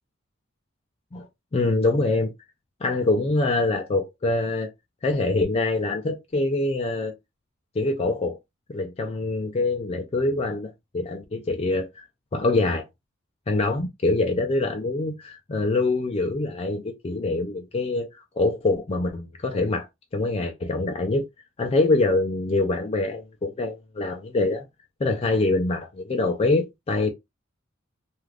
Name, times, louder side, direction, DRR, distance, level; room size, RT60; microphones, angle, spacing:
voice 1, 1.5-2.3 2.8-4.7 5.0-7.1 7.8-8.4 8.7-12.0 12.3-12.8 13.5-19.9 20.1-21.2 21.6-24.6 25.0-27.1, left 2 dB, 30° left, 0.4 m, -24 dB
2.4 x 2.4 x 3.2 m
head